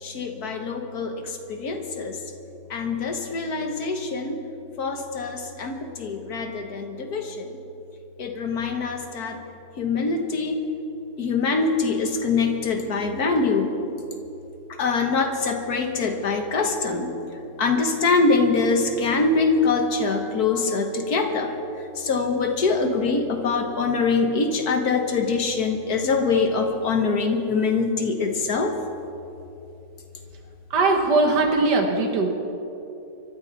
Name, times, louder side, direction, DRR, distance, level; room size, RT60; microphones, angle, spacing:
voice 1, 0.0-2.2 2.7-4.4 4.8-7.5 8.2-9.4 9.8-10.6 11.2-13.7 14.7-17.2 17.6-28.7, left 4 dB, 65° left, 4 dB, 1.9 m, -24 dB
voice 2, 30.7-32.3, right 3 dB, 90° right, 3 dB, 2.0 m, -20 dB
24.5 x 13.0 x 4.1 m, 2.9 s
omnidirectional pair, 1.7 m